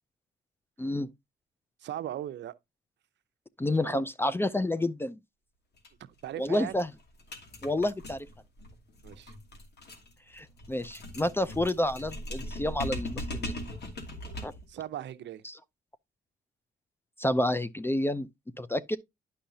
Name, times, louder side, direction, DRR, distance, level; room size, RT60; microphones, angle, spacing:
voice 1, 0.8-1.1 3.6-5.2 6.4-6.9 7.6-8.3 10.3-13.5 14.4-14.5 15.4-15.6 17.2-18.3 18.6-19.0, left 1 dB, 10° left, 0.4 m, -29 dB
voice 2, 1.8-2.5 3.8-4.0 6.2-6.7 9.0-9.3 14.7-15.4, right 11 dB, 65° right, 0.6 m, -38 dB
sound 1, 5.8-5.9 6.2-6.3 6.5-14.7, left 1 dB, 55° left, 2.5 m, -40 dB
10.0 x 5.5 x 2.7 m
cardioid pair, 90°, 20 cm